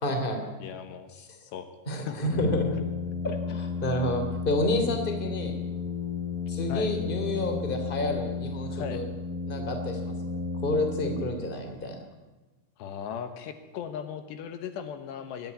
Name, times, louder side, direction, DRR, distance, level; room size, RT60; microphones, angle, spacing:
voice 1, 0.0-0.4 1.2-1.3 1.9-2.6 3.2-5.6 6.5-9.1 9.5-10.1 10.5-11.9, left 1 dB, 15° left, 4 dB, 2.5 m, -29 dB
voice 2, 0.6-1.1 1.4-1.7 2.1-2.5 3.3-3.4 6.7-6.9 8.7-9.0 12.8-15.5, left 8 dB, 75° left, 9 dB, 3.2 m, -37 dB
Brass instrument, 2.3-11.8, left 4 dB, 35° left, 1.4 m, -33 dB
21.5 x 13.5 x 9.7 m, 1.2 s
omnidirectional pair, 5.2 m